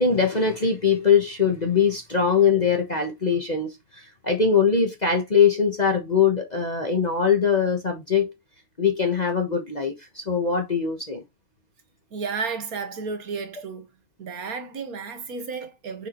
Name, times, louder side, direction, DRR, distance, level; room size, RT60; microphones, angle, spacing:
voice 1, 0.0-3.7 4.0-8.3 8.8-11.2, left 6 dB, 30° left, 0.7 m, -22 dB
voice 2, 12.1-13.9 14.2-16.1, right 5 dB, 50° right, 1.4 m, -32 dB
6.7 x 4.9 x 3.0 m
omnidirectional pair, 2.4 m